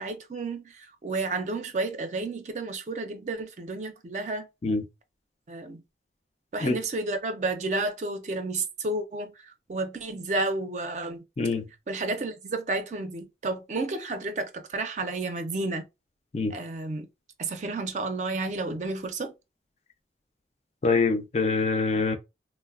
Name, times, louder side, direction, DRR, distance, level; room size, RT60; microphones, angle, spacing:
voice 1, 0.0-4.5 5.5-5.8 6.5-11.2 11.9-15.8 16.5-17.1 17.4-19.3, right 2 dB, 40° right, 0.4 m, -31 dB
voice 2, 20.8-22.2, left 3 dB, 35° left, 0.3 m, -25 dB
3.1 x 2.1 x 2.3 m
head